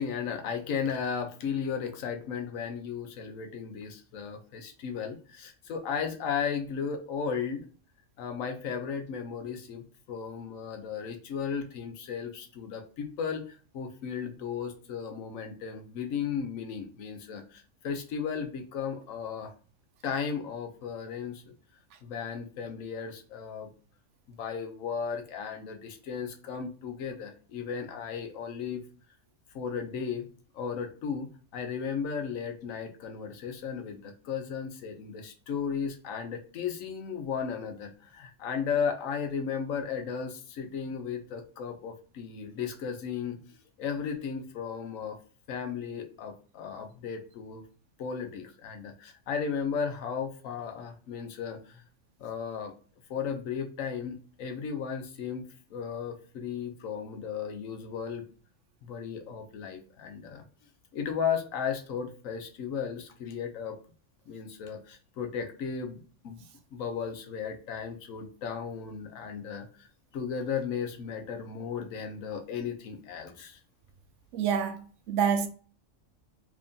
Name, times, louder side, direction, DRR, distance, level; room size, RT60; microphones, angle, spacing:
voice 1, 0.0-7.7 8.2-19.5 20.0-21.4 22.0-23.7 24.3-28.8 29.5-30.3 30.5-45.2 45.5-47.6 48.0-51.8 52.2-52.7 53.1-58.2 58.8-60.4 60.9-63.8 64.3-66.4 66.7-69.9 70.1-73.6, left 6 dB, 85° left, 1.1 m, -35 dB
voice 2, 74.3-75.5, right 7 dB, 70° right, 0.9 m, -27 dB
3.3 x 2.6 x 3.6 m
omnidirectional pair, 1.4 m